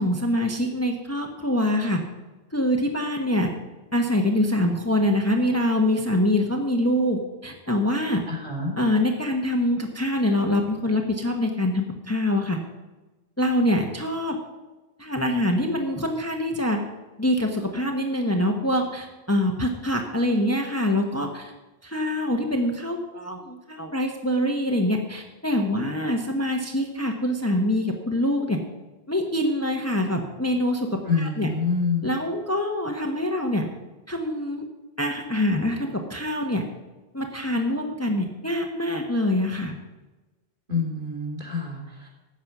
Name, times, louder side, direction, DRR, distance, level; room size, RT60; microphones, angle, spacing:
voice 1, 0.0-2.0 2.5-3.5 3.9-8.2 8.8-12.6 13.4-14.4 15.0-16.8 17.2-21.5 21.8-28.6 29.1-31.5 32.0-33.7 34.1-34.6 35.0-36.6 37.1-39.7, left 1 dB, 15° left, 3 dB, 1.0 m, -24 dB
voice 2, 8.3-8.7 31.0-32.1 40.7-42.1, left 4 dB, 55° right, -2 dB, 3.7 m, -27 dB
13.5 x 8.5 x 6.0 m, 1.2 s
omnidirectional pair, 1.1 m